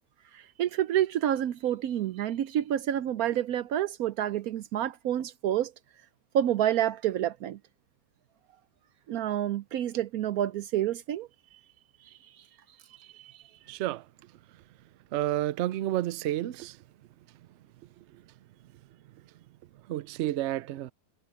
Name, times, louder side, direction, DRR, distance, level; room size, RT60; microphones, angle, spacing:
voice 1, 0.6-5.7 6.3-7.6 9.1-11.3 13.1-13.3, right 11 dB, 70° right, 1.0 m, -28 dB
voice 2, 13.7-14.0 15.1-16.7 19.9-20.9, right 14 dB, 90° right, 0.6 m, -30 dB
omnidirectional pair, 1.8 m